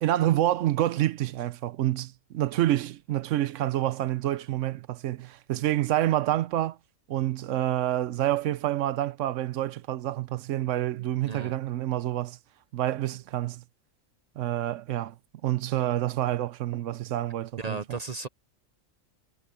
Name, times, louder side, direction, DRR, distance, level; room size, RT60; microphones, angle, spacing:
voice 1, 0.0-6.8 7.1-12.4 12.7-13.6 14.4-15.2 15.4-18.0, right 13 dB, 70° right, 0.9 m, -28 dB
voice 2, 17.6-18.3, right 4 dB, 45° right, 0.5 m, -34 dB
omnidirectional pair, 1.4 m